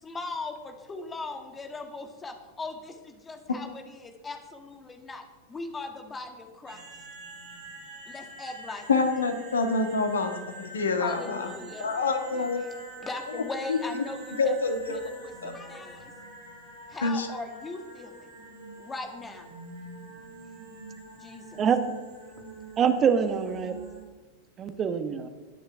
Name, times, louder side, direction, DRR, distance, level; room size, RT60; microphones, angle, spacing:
voice 1, 0.0-6.9 8.1-8.9 11.0-12.5 13.0-14.6 14.9-16.1 16.9-18.3 18.8-19.5 21.2-21.6, left 3 dB, 15° left, 5 dB, 2.0 m, -39 dB
sound 1, 6.7-24.0, right 2 dB, 60° right, 5.0 m, -45 dB
voice 2, 8.9-11.5 11.8-12.7 13.7-13.8 14.4-15.1 15.4-15.5 17.0-17.3, left 3 dB, 70° left, 6 dB, 1.7 m, -27 dB
voice 3, 22.8-23.7 24.6-25.3, right 7 dB, 25° right, 9 dB, 1.1 m, -24 dB
20.5 x 10.0 x 3.5 m, 1.3 s
figure-of-eight pair, 90°, 0 cm